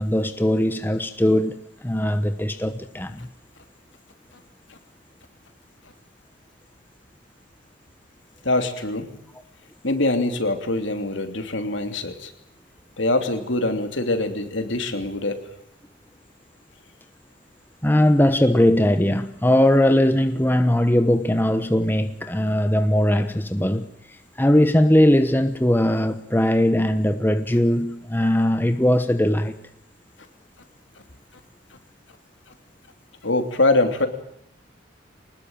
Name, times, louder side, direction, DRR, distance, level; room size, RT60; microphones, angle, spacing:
voice 1, 0.0-3.3 17.8-23.9 24.4-29.5, left 1 dB, 10° left, 1.0 m, -20 dB
voice 2, 8.4-9.1 9.8-12.3 13.0-15.4 33.2-34.1, left 2 dB, 65° left, 3.1 m, -23 dB
24.5 x 20.0 x 9.0 m
head